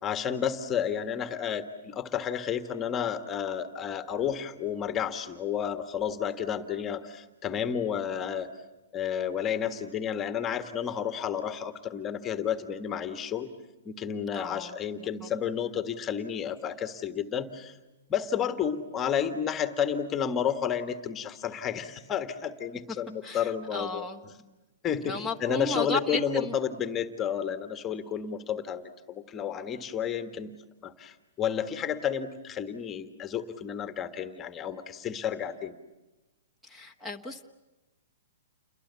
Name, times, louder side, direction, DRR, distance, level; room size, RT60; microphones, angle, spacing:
voice 1, 0.0-8.5 8.9-13.5 13.8-17.8 18.1-24.0 24.8-30.5 30.8-35.7, left 8 dB, 20° left, 9 dB, 1.6 m, -31 dB
voice 2, 14.3-15.3 23.2-24.2 25.1-26.5 36.6-37.4, left 3 dB, 5° right, 7 dB, 1.5 m, -34 dB
29.5 x 22.0 x 8.4 m, 1.0 s
hypercardioid pair, 145°, 0 cm